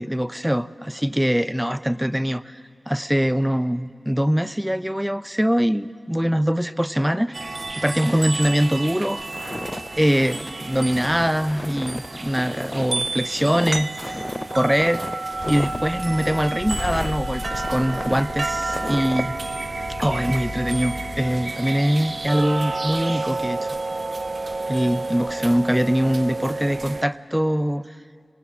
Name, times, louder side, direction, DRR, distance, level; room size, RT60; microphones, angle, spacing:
voice 1, 0.0-2.6 2.9-7.5 7.8-9.3 9.9-14.2 14.5-15.0 15.4-19.4 20.0-23.8 24.7-27.8, equal, 5° right, 14 dB, 0.7 m, -23 dB
sound 1, 7.3-27.0, right 3 dB, 55° right, 0.7 m, -30 dB
Walk footsteps, 9.3-19.3, left 1 dB, 30° left, 0.5 m, -34 dB
sound 2, 15.4-21.5, left 3 dB, 75° left, 0.6 m, -36 dB
26.5 x 18.5 x 7.5 m, 2.3 s
cardioid pair, 40°, 0 cm